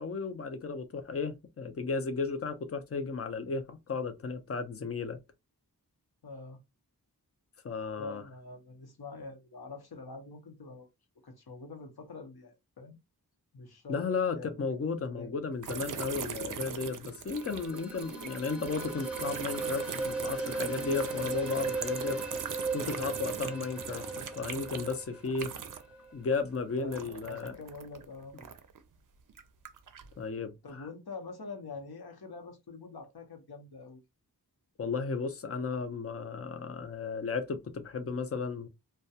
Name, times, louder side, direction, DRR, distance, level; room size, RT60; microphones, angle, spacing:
voice 1, 0.0-5.2 7.6-8.2 13.9-22.2 22.7-25.5 26.1-27.6 30.2-30.9 34.8-38.7, left 4 dB, 40° left, 0.5 m, -34 dB
voice 2, 6.2-6.6 8.0-10.9 11.2-13.0 13.5-14.1 14.3-14.6 15.0-15.3 26.8-28.4 30.6-34.0, left 3 dB, 70° left, 0.8 m, -45 dB
sound 1, 15.6-26.0 26.3-28.8 29.3-30.1, right 7 dB, 55° right, 0.5 m, -40 dB
sound 2, 17.3-26.1, right 3 dB, 5° right, 0.7 m, -38 dB
2.3 x 2.2 x 2.7 m
wide cardioid pair, 60°, 39 cm